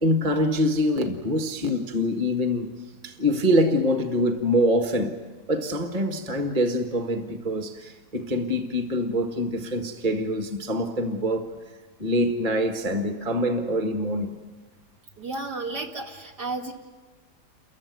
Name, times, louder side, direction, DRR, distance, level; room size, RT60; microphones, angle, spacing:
voice 1, 0.0-2.7 3.0-5.2 5.5-11.5 12.0-14.4, equal, 25° right, 1.5 m, -25 dB
voice 2, 15.2-16.7, right 3 dB, 75° right, 2.9 m, -32 dB
29.5 x 15.0 x 9.4 m
omnidirectional pair, 1.8 m